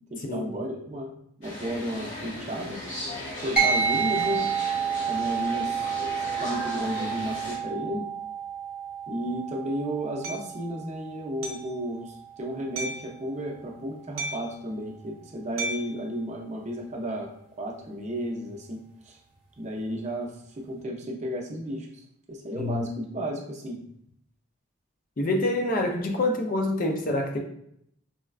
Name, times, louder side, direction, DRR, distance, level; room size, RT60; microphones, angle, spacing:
voice 1, 0.1-1.1 1.4-2.8 3.4-4.5 5.0-8.1 9.1-19.2 19.6-23.8, equal, 35° right, -1 dB, 0.5 m, -33 dB
sound 1, 1.4-7.6, left 1 dB, 60° left, 1.3 m, -37 dB
sound 2, 3.6-13.3, right 7 dB, 5° right, 0.9 m, -30 dB
Hammer, 10.2-10.5 11.4-11.7 12.8-13.1 14.2-14.6 15.6-16.0, right 2 dB, 80° right, 0.5 m, -34 dB
voice 2, 25.2-27.4, left 1 dB, 40° left, 1 dB, 0.4 m, -26 dB
4.2 x 2.2 x 2.3 m, 0.72 s
head